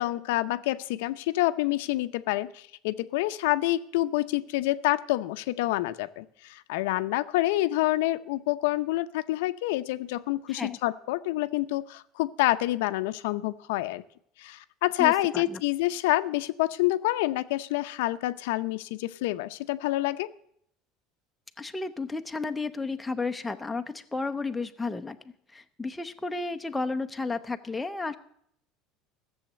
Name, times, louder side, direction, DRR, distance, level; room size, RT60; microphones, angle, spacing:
voice 1, 0.0-14.0 14.4-20.3, left 17 dB, 85° left, 11 dB, 0.6 m, -27 dB
voice 2, 15.0-15.6 21.6-25.2 25.5-28.2, left 3 dB, 5° left, 7 dB, 0.6 m, -32 dB
15.0 x 7.2 x 7.8 m, 0.68 s
cardioid pair, 170°, 0 cm